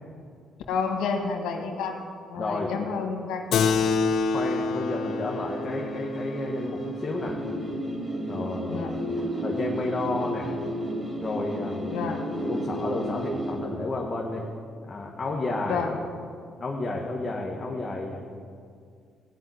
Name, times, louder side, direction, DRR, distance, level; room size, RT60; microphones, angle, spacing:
voice 1, 0.7-2.0 2.3-3.8 8.7-8.9 11.9-12.2 15.7-15.9, left 5 dB, 90° left, 2 dB, 1.8 m, -30 dB
voice 2, 2.4-2.7 4.3-7.4 8.3-8.9 9.4-10.6 11.2-12.1 12.4-14.5 14.8-15.9 16.6-18.2, left 2 dB, 30° left, -2 dB, 1.6 m, -31 dB
Keyboard (musical), 3.5-8.4, left 5 dB, 70° left, 0.7 m, -28 dB
sound 1, 4.8-13.6, right 1 dB, 20° right, 4.2 m, -33 dB
15.5 x 5.7 x 9.5 m, 2.2 s
cardioid pair, 90°, 0 cm